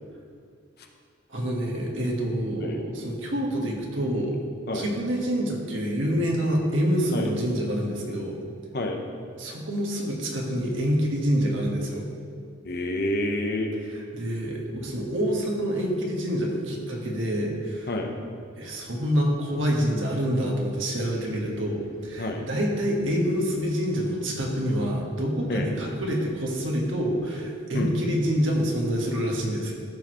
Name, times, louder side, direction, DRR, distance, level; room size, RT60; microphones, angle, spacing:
voice 1, 1.3-4.3 4.7-8.4 9.4-12.1 14.1-17.9 18.6-29.7, equal, 85° right, -1 dB, 1.6 m, -27 dB
voice 2, 12.6-13.7 17.9-18.1 22.2-22.4 25.5-25.7 27.7-27.9, left 1 dB, 55° left, 3 dB, 1.0 m, -28 dB
13.5 x 6.4 x 3.1 m, 2.2 s
head